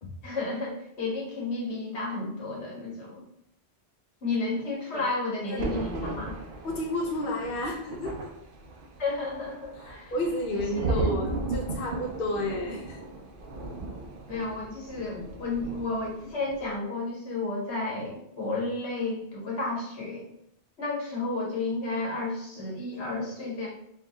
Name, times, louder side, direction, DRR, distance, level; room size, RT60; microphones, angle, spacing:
voice 1, 0.2-3.2 4.2-6.3 9.0-10.1 10.5-11.1 14.3-20.3 20.8-23.7, left 3 dB, 75° left, -4 dB, 1.4 m, -32 dB
Thunder, 5.6-16.2 16.5-16.8, right 3 dB, 60° right, 0.7 m, -35 dB
voice 2, 6.6-8.3 10.1-13.0, left 1 dB, 55° left, 0 dB, 0.7 m, -31 dB
4.5 x 2.3 x 3.0 m, 0.74 s
omnidirectional pair, 1.1 m